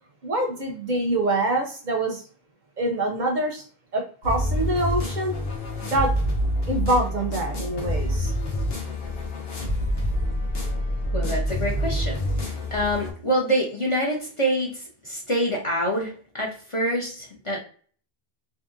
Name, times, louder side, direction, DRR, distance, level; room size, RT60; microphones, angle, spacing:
voice 1, 0.2-2.2 2.8-3.6 3.9-5.3 5.8-6.1 6.7-8.3, right 1 dB, 55° right, 3 dB, 0.6 m, -25 dB
sound 1, 4.2-13.1, equal, 70° left, 1.0 m, -27 dB
voice 2, 11.1-17.6, equal, 40° left, -2 dB, 0.5 m, -26 dB
2.7 x 2.6 x 2.4 m, 0.43 s
omnidirectional pair, 1.0 m